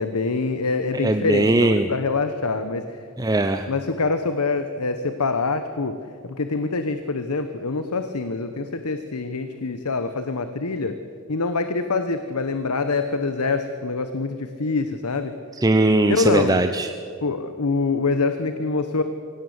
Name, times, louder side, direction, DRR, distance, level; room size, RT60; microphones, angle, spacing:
voice 1, 0.0-3.0 3.7-6.0 6.2-10.9 11.3-15.3 16.1-16.6 17.2-19.0, left 3 dB, 85° left, 9 dB, 1.0 m, -25 dB
voice 2, 1.0-1.9 3.2-3.7 15.6-16.9, right 2 dB, 15° right, 8 dB, 0.6 m, -19 dB
24.5 x 17.0 x 8.0 m, 2.4 s
head